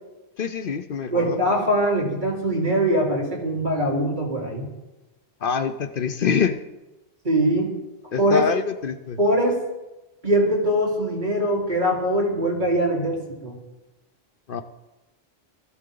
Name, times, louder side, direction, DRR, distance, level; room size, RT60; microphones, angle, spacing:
voice 1, 0.4-1.4 5.4-6.6 8.1-9.2 14.5-14.6, left 6 dB, 60° left, 9 dB, 0.9 m, -25 dB
voice 2, 1.1-4.7 7.2-7.7 8.2-8.5 9.2-9.6 10.2-13.5, right 1 dB, 50° right, -4 dB, 4.5 m, -22 dB
19.0 x 15.0 x 3.9 m, 1.1 s
omnidirectional pair, 1.0 m